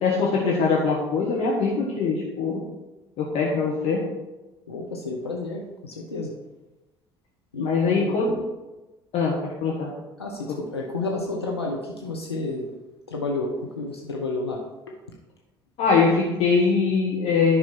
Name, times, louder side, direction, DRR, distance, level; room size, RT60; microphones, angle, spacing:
voice 1, 0.0-2.6 3.2-4.0 7.6-8.4 9.1-9.3 9.6-9.9 10.5-10.6 15.8-17.6, left 4 dB, 50° left, -3 dB, 1.5 m, -22 dB
voice 2, 4.7-6.3 7.5-8.1 10.2-12.7 13.1-14.6, left 2 dB, 85° left, -1 dB, 0.8 m, -30 dB
10.0 x 5.7 x 4.4 m, 1.1 s
figure-of-eight pair, 55°, 13 cm